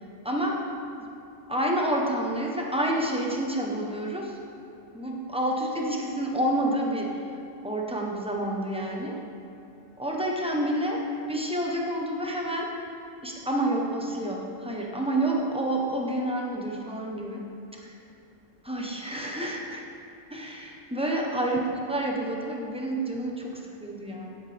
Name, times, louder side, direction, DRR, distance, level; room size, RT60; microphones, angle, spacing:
voice 1, 0.2-0.6 1.5-4.4 4.9-7.2 7.6-9.2 10.0-12.7 13.2-17.4 17.8-17.9 18.6-19.8 20.3-24.4, right 1 dB, 5° right, -2 dB, 0.8 m, -29 dB
9.6 x 8.0 x 3.4 m, 2.8 s
omnidirectional pair, 1.3 m